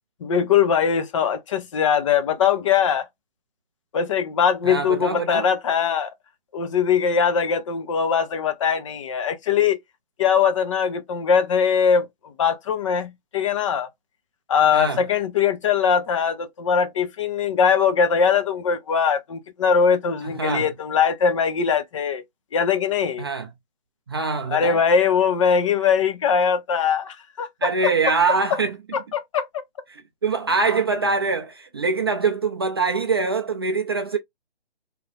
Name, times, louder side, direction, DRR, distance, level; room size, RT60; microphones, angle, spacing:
voice 1, 0.2-3.1 3.9-6.1 6.5-9.8 10.2-13.9 14.5-22.2 22.5-23.2 24.5-27.9 28.9-29.6, left 7 dB, 30° left, 0.6 m, -21 dB
voice 2, 4.6-5.5 14.7-15.0 20.2-20.7 23.2-23.5 24.1-24.8 27.6-28.8 29.9-34.2, right 4 dB, 25° right, 0.4 m, -24 dB
3.7 x 2.9 x 2.5 m
hypercardioid pair, 145°, 30 cm